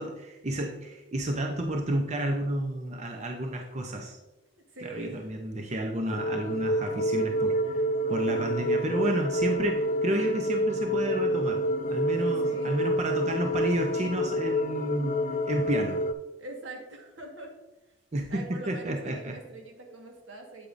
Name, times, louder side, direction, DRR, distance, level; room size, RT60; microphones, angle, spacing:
voice 1, 0.0-4.2 4.8-7.6 8.1-11.6 11.9-16.0 18.1-19.3, right 1 dB, 35° right, 3 dB, 0.7 m, -31 dB
voice 2, 4.7-5.2 12.4-12.9 16.4-17.5 18.3-20.7, right 2 dB, 85° right, 2 dB, 1.5 m, -43 dB
sound 1, 6.1-16.1, equal, 40° left, 0.3 m, -28 dB
8.4 x 8.1 x 2.6 m, 1.0 s
head